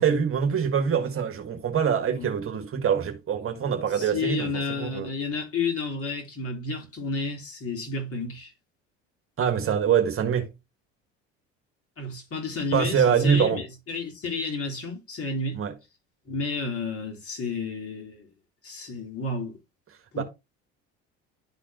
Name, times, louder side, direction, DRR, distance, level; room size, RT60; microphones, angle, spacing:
voice 1, 0.0-5.1 9.4-10.5 12.7-13.6 15.5-15.7 20.2-20.3, right 7 dB, 40° right, 1.6 m, -24 dB
voice 2, 3.9-8.5 12.0-15.6 16.3-18.3 18.6-19.6 20.1-20.2, left 3 dB, 40° left, 3.7 m, -31 dB
11.5 x 4.1 x 2.9 m
hypercardioid pair, 75°, 34 cm